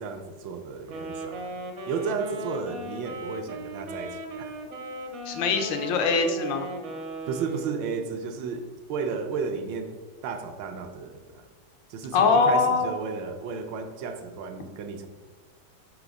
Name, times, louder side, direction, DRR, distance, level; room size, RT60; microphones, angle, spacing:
voice 1, 0.0-4.5 7.3-11.5 11.9-15.1, right 5 dB, 85° right, 6 dB, 1.4 m, -33 dB
Wind instrument woodwind instrument, 0.8-8.0, right 1 dB, 60° right, 0.8 m, -37 dB
voice 2, 5.3-6.7 12.1-12.9, left 4 dB, 90° left, 5 dB, 1.4 m, -22 dB
4.8 x 4.0 x 5.1 m, 1.4 s
omnidirectional pair, 2.0 m